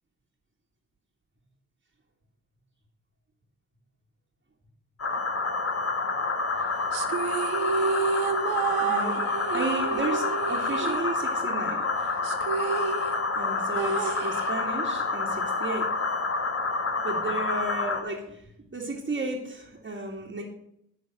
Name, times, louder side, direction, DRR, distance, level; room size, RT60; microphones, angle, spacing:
sound 1, 5.0-18.0, left 3 dB, 35° left, 1.7 m, -28 dB
sound 2, 6.9-11.6 11.8-11.9 12.2-14.9, right 6 dB, 70° right, 0.9 m, -30 dB
voice 1, 8.8-9.2 9.5-11.9 13.3-15.9 17.0-20.4, right 2 dB, 25° right, -4 dB, 2.1 m, -33 dB
11.0 x 3.9 x 7.7 m, 0.75 s
hypercardioid pair, 40°, 39 cm